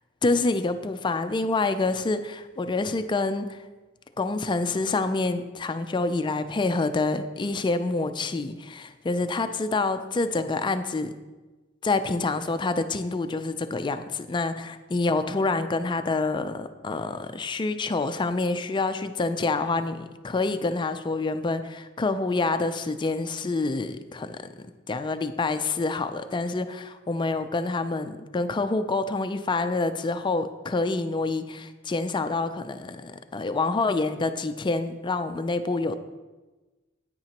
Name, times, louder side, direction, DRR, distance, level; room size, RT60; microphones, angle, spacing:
voice 1, 0.2-3.6 4.2-11.1 11.8-36.0, left 3 dB, 20° left, 10 dB, 0.3 m, -27 dB
9.7 x 8.8 x 2.9 m, 1.2 s
head